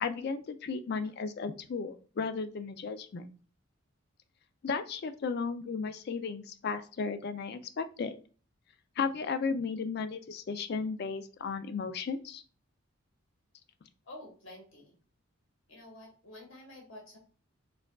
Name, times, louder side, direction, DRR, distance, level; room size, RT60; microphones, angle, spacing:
voice 1, 0.0-3.3 4.6-8.2 9.0-12.4, left 5 dB, 50° left, 10 dB, 0.3 m, -34 dB
voice 2, 14.0-14.9 15.7-17.2, left 1 dB, 65° left, 0 dB, 1.1 m, -49 dB
4.4 x 2.4 x 2.2 m, 0.39 s
head